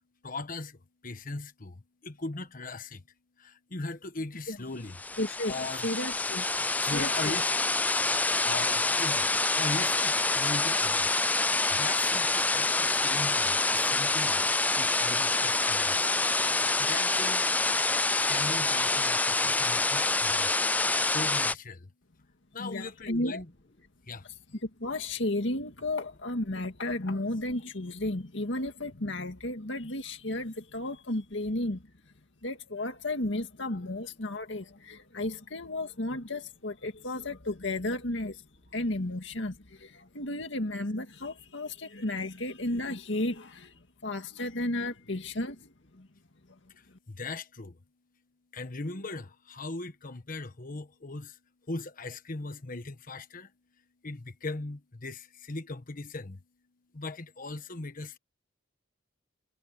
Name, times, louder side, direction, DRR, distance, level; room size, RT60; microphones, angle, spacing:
voice 1, 0.2-0.7 1.0-1.7 2.0-3.0 3.7-5.0 5.5-5.9 6.9-7.5 8.4-9.2 9.6-11.0 11.7-14.4 14.8-15.9 16.9-17.4 18.3-20.0 20.3-20.5 21.1-21.8 22.5-23.5 24.1-24.2 47.1-47.7 48.5-51.3 51.7-53.5 54.0-55.2 55.5-56.4 56.9-58.2, left 3 dB, 45° left, 1.3 m, -38 dB
sound 1, 4.9-21.5, left 3 dB, 10° left, 0.3 m, -27 dB
voice 2, 5.2-5.6 5.8-6.5 6.8-7.4 22.6-23.4 24.6-31.8 32.4-38.4 38.7-43.8 44.0-46.1, left 1 dB, 70° left, 2.1 m, -33 dB
head